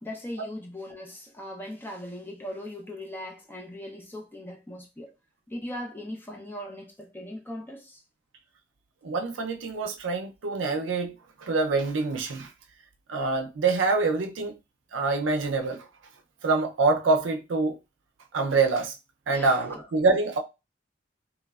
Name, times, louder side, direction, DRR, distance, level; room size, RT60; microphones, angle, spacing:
voice 1, 0.0-5.1 5.5-8.0 19.3-19.8, left 1 dB, 10° left, 0.5 m, -39 dB
voice 2, 9.0-11.1 11.4-12.5 13.1-14.6 14.9-15.9 16.4-17.8 18.3-18.9 19.3-20.4, right 3 dB, 90° right, 0.5 m, -25 dB
3.1 x 2.0 x 2.3 m
head